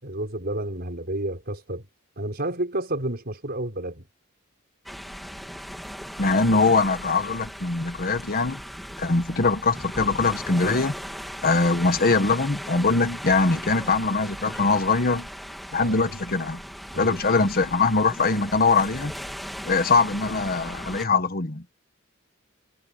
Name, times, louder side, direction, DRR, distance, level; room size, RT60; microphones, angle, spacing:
voice 1, 0.0-1.9 2.2-4.1 15.8-16.2 16.9-17.2, right 1 dB, 50° right, 5.7 m, -30 dB
sound 1, 4.9-21.1, equal, ahead, 2.9 m, -37 dB
voice 2, 6.2-8.6 9.0-10.9 11.4-15.3 15.7-16.6 17.0-19.1 19.6-21.6, left 3 dB, 45° left, 1.5 m, -22 dB
head